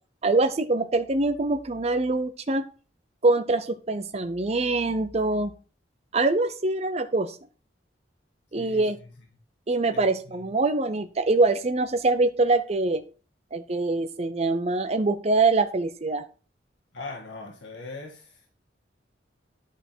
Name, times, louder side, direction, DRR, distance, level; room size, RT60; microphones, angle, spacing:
voice 1, 0.2-2.6 3.2-5.5 6.1-7.4 8.5-9.0 9.7-13.0 13.5-16.2, right 3 dB, 35° right, 0.7 m, -24 dB
voice 2, 8.6-8.9 9.9-10.4 16.9-18.5, left 3 dB, 80° left, 1.7 m, -40 dB
11.0 x 5.7 x 4.5 m
head